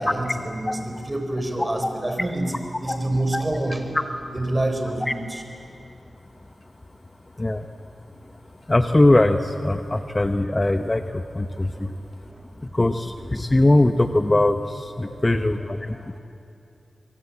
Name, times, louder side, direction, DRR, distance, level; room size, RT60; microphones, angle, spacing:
voice 1, 0.0-2.5 2.8-3.8 4.3-5.4 11.8-11.9 12.3-12.4 15.0-15.5 15.9-16.1, right 1 dB, 20° right, 5 dB, 4.4 m, -27 dB
voice 2, 1.6-1.9 2.9-3.0 3.3-3.4 7.4-7.6 8.7-11.9 12.6-16.2, left 1 dB, 25° left, 8 dB, 1.0 m, -21 dB
24.0 x 23.0 x 8.7 m, 2.5 s
cardioid pair, 65°, 0 cm